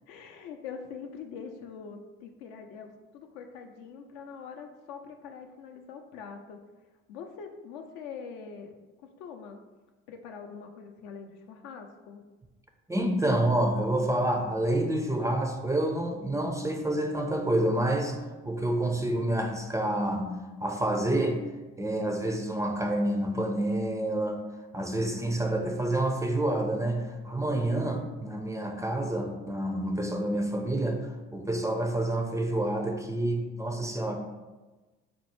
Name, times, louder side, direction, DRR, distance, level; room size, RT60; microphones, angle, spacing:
voice 1, 0.1-6.6 7.1-9.6 10.1-12.2, left 6 dB, 75° left, 5 dB, 0.5 m, -44 dB
voice 2, 12.9-18.2 18.5-20.3 20.6-21.4 21.8-24.4 24.7-34.1, right 1 dB, 10° right, 3 dB, 0.4 m, -28 dB
4.3 x 2.0 x 3.0 m, 1.2 s
hypercardioid pair, 60°, 31 cm